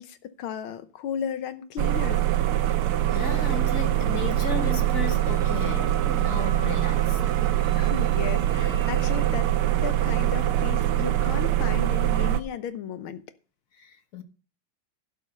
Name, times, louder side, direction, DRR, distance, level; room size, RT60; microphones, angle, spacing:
voice 1, 0.0-2.2 7.8-9.5 9.8-13.2, left 8 dB, 75° left, 1.7 m, -34 dB
sound 1, 1.8-12.4, right 13 dB, 80° right, 1.6 m, -23 dB
voice 2, 3.1-7.2 13.7-14.2, left 7 dB, 45° left, 1.3 m, -35 dB
Wind instrument woodwind instrument, 5.1-9.4, right 5 dB, 20° right, 1.2 m, -43 dB
11.5 x 7.1 x 5.3 m
omnidirectional pair, 2.4 m